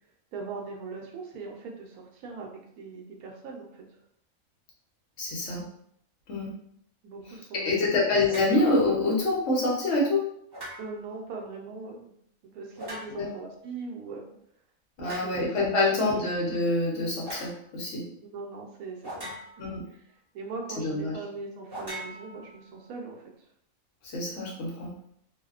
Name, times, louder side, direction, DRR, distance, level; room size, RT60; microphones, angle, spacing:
voice 1, 0.3-3.8 7.0-8.0 10.8-12.0 12.4-14.3 15.0-16.1 18.2-19.4 19.9-20.0 20.3-23.2, right 4 dB, 85° right, 1 dB, 1.1 m, -40 dB
voice 2, 5.2-5.6 6.3-6.5 7.6-10.2 13.1-13.3 15.0-18.0 19.6-19.8 20.8-21.2 24.0-24.9, left 2 dB, 60° left, -3 dB, 1.0 m, -26 dB
sound 1, 8.3-8.6 10.5-11.1 12.8-13.4 15.0-15.4 17.2-17.5 19.0-19.8 21.7-22.8, equal, 40° right, 0.3 m, -40 dB
2.7 x 2.1 x 2.3 m, 0.70 s
omnidirectional pair, 1.5 m